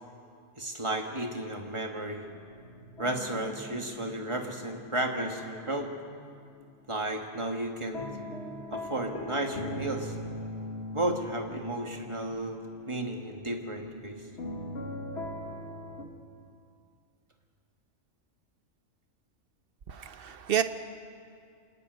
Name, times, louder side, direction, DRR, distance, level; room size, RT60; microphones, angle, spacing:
voice 1, 0.6-2.3 3.0-5.9 6.9-8.1 8.7-10.1 10.9-12.6 12.9-14.2, right 1 dB, 25° right, 2 dB, 1.9 m, -33 dB
sound 1, 2.2-6.3 6.6-16.0, left 1 dB, 60° left, 2.0 m, -41 dB
voice 2, 19.9-20.6, right 9 dB, 55° right, 10 dB, 1.0 m, -29 dB
27.0 x 11.0 x 9.3 m, 2.3 s
omnidirectional pair, 1.3 m